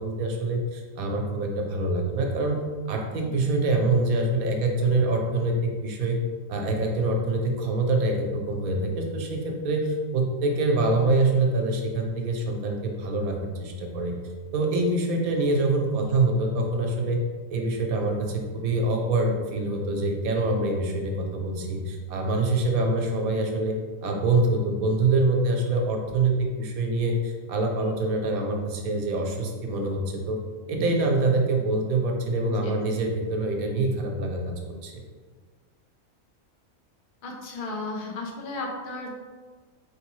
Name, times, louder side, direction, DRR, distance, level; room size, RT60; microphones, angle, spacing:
voice 1, 0.0-2.6 2.9-6.2 6.5-14.1 14.5-17.2 17.5-23.7 24.0-30.4 30.7-34.5 34.8-34.9, right 2 dB, 80° right, 2 dB, 1.1 m, -25 dB
voice 2, 32.4-32.7 37.2-39.1, left 2 dB, 50° left, -1 dB, 0.6 m, -35 dB
3.9 x 3.3 x 3.0 m, 1.5 s
omnidirectional pair, 1.5 m